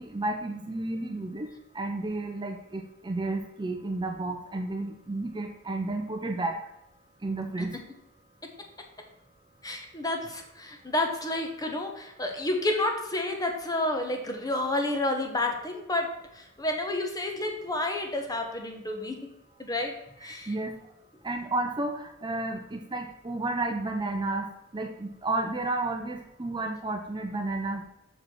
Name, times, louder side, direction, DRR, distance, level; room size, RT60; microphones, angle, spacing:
voice 1, 0.0-1.5 1.7-6.6 7.2-7.8 20.5-20.7 21.2-24.5 24.7-27.9, right 2 dB, 20° right, 4 dB, 0.6 m, -32 dB
voice 2, 9.6-19.3 19.6-20.5, left 2 dB, 20° left, 4 dB, 1.0 m, -30 dB
6.4 x 4.8 x 6.1 m, 0.85 s
head